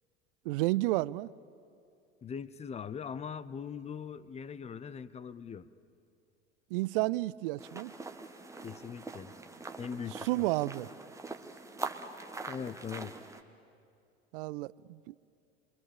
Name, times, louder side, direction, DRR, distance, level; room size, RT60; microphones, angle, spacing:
voice 1, 0.4-1.3 6.7-7.9 10.3-10.9 14.3-15.1, right 19 dB, 55° right, 0.5 m, -31 dB
voice 2, 2.2-5.7 8.6-9.3 9.8-10.5 12.5-13.1, left 7 dB, 20° left, 0.7 m, -41 dB
sound 1, 7.6-13.4, right 3 dB, 10° right, 1.3 m, -43 dB
27.5 x 22.0 x 7.1 m
figure-of-eight pair, 75°, 33 cm